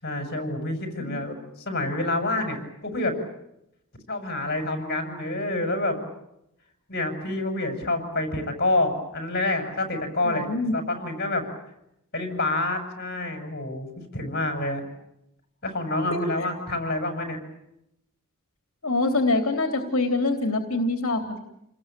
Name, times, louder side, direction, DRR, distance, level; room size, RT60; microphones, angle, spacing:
voice 1, 0.0-1.3 1.7-3.2 4.1-6.0 6.9-10.5 10.7-11.4 12.1-13.9 14.1-14.8 15.6-17.4, left 2 dB, 45° left, 6 dB, 6.8 m, -27 dB
voice 2, 10.2-10.7 16.1-16.5 18.8-21.4, left 2 dB, 65° left, 6 dB, 3.3 m, -25 dB
29.5 x 21.0 x 9.0 m, 0.81 s
head